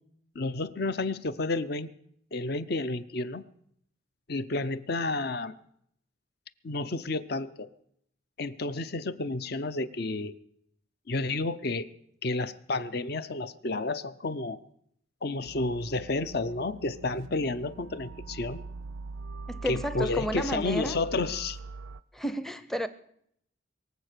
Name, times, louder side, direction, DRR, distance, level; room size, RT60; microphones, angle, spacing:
voice 1, 0.3-1.9 2.3-3.4 4.3-5.5 6.6-7.7 8.4-10.3 11.1-11.9 12.2-14.6 15.2-18.6 19.7-21.6, left 2 dB, 55° left, 0.7 m, -31 dB
sound 1, 15.4-22.0, right 3 dB, 85° right, 0.5 m, -42 dB
voice 2, 19.5-21.0 22.1-22.9, equal, ahead, 0.6 m, -32 dB
22.5 x 8.0 x 6.7 m
head